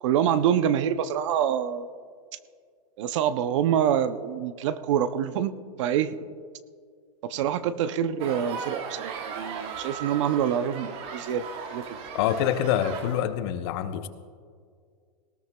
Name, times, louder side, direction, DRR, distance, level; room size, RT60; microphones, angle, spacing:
voice 1, 0.0-1.9 3.0-5.5 5.8-6.2 7.2-12.0, right 9 dB, 45° right, 13 dB, 0.6 m, -26 dB
sound 1, 8.2-13.2, right 6 dB, 25° right, 0.9 m, -37 dB
voice 2, 12.1-14.1, left 10 dB, 40° left, 10 dB, 0.7 m, -26 dB
19.0 x 18.0 x 2.3 m, 2.1 s
supercardioid pair, 160°, 21 cm